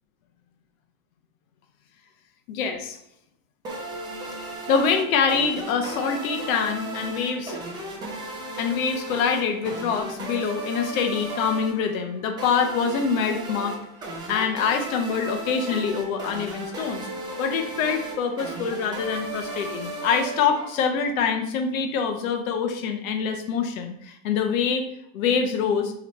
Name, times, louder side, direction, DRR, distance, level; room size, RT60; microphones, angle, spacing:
voice 1, 2.5-3.0 4.7-7.6 8.6-13.8 14.3-17.1 17.4-24.8 25.1-25.9, left 6 dB, 70° left, 5 dB, 0.9 m, -25 dB
sound 1, 3.6-21.1, right 2 dB, 10° right, 0.6 m, -35 dB
7.6 x 3.2 x 4.0 m, 0.80 s
supercardioid pair, 175°, 43 cm